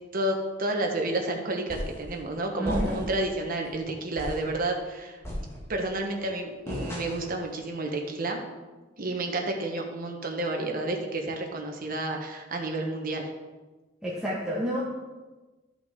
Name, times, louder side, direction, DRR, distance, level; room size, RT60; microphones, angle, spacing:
voice 1, 0.1-5.2 5.7-8.4 9.0-13.3, right 2 dB, 50° right, 2 dB, 1.3 m, -30 dB
sound 1, 1.7-2.1 2.6-3.3 3.6-3.8 4.2-4.5 5.2-5.9 6.7-7.4, equal, 15° left, 1.9 m, -35 dB
voice 2, 2.6-3.0 14.0-14.8, equal, 5° right, -8 dB, 1.4 m, -29 dB
13.0 x 5.9 x 3.7 m, 1.2 s
head